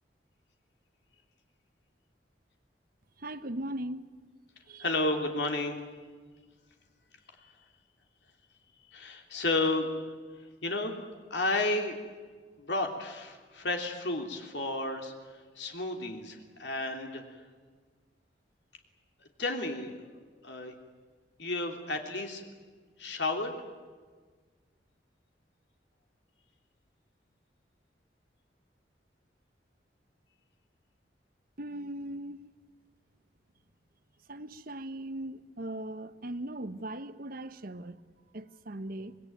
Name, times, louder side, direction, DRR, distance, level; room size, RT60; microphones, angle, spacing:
voice 1, 3.2-4.2 4.7-4.8 31.6-32.4 34.3-38.0 38.3-39.1, right 1 dB, 55° right, 1.1 m, -39 dB
voice 2, 4.8-5.8 7.4-7.6 8.9-9.9 10.6-10.9 11.3-12.0 12.6-15.1 15.5-17.4 19.4-20.0 20.4-20.7 21.4-22.4 23.0-23.5, left 2 dB, 70° left, 3.2 m, -32 dB
25.5 x 21.0 x 9.2 m
head